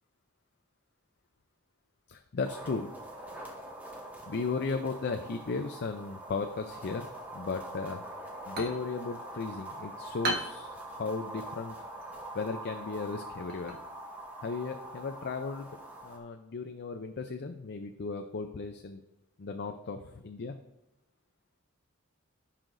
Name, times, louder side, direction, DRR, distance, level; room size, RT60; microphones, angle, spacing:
voice 1, 2.1-2.9 4.2-7.1 7.3-8.0 8.5-11.8 12.3-13.7 14.4-15.7 16.0-19.0 19.4-20.6, left 4 dB, 50° left, 6 dB, 0.5 m, -35 dB
sound 1, 2.4-16.2, right 1 dB, 10° right, 1.7 m, -44 dB
sound 2, 8.2-15.7, right 1 dB, 50° right, 1.4 m, -41 dB
15.5 x 5.8 x 2.6 m, 0.92 s
head